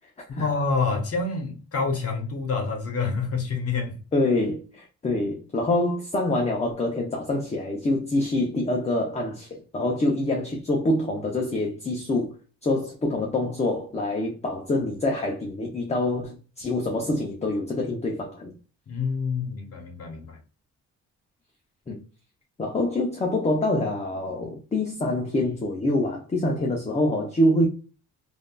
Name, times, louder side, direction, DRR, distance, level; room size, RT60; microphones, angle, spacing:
voice 1, 0.3-4.0 18.9-20.4, left 4 dB, 50° left, 1.1 m, -27 dB
voice 2, 4.1-12.3 12.6-18.6 21.9-22.0 22.6-27.7, left 1 dB, 20° left, 0.7 m, -25 dB
3.4 x 2.6 x 2.3 m
cardioid pair, 90°, 30 cm